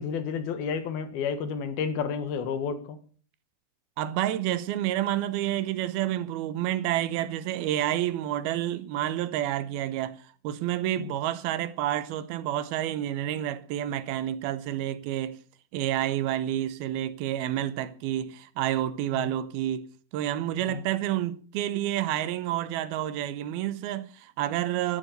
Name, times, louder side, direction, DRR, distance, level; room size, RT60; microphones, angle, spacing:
voice 1, 0.0-3.0 11.0-11.1 19.1-19.3 20.7-20.8, left 6 dB, 90° left, 3.5 m, -31 dB
voice 2, 4.0-15.4 15.7-19.9 20.1-25.0, right 12 dB, 90° right, 2.9 m, -29 dB
13.5 x 12.5 x 6.7 m
omnidirectional pair, 4.2 m